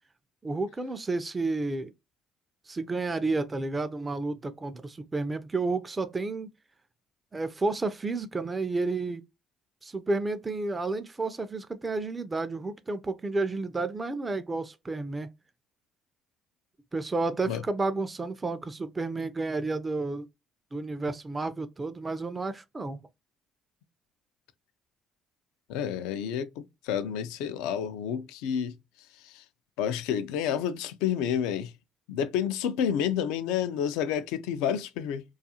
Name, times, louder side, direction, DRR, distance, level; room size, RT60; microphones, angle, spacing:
voice 1, 0.4-1.9 2.7-6.5 7.3-9.2 9.8-15.3 16.9-20.3 20.7-23.0, right 3 dB, 25° right, 0.4 m, -31 dB
voice 2, 25.7-28.8 29.2-29.4 29.8-31.7 32.1-35.2, left 8 dB, 85° left, 0.3 m, -29 dB
2.3 x 2.3 x 2.7 m
supercardioid pair, 70°, 0 cm